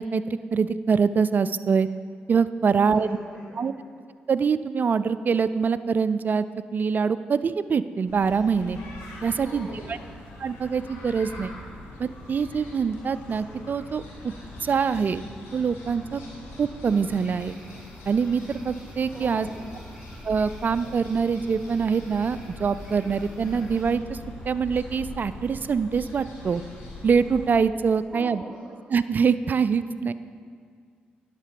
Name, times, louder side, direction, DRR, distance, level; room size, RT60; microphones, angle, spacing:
voice 1, 0.0-1.9 2.3-3.1 3.6-3.7 4.3-6.5 6.7-8.8 9.2-10.0 10.4-11.5 12.0-14.3 14.6-15.2 15.5-16.2 16.6-17.6 18.1-19.5 20.2-24.2 24.5-26.6 27.0-28.4 28.9-30.1, right 6 dB, 45° right, 14 dB, 0.4 m, -24 dB
voice 2, 2.7-3.9 9.4-10.1 19.1-19.9 28.1-28.8, equal, 15° left, -5 dB, 2.2 m, -42 dB
sound 1, 8.1-27.5, left 2 dB, 75° left, 1.9 m, -42 dB
sound 2, 16.8-23.8, right 1 dB, 5° right, 2.3 m, -54 dB
10.0 x 6.7 x 5.2 m, 2.1 s
supercardioid pair, 45°, 4 cm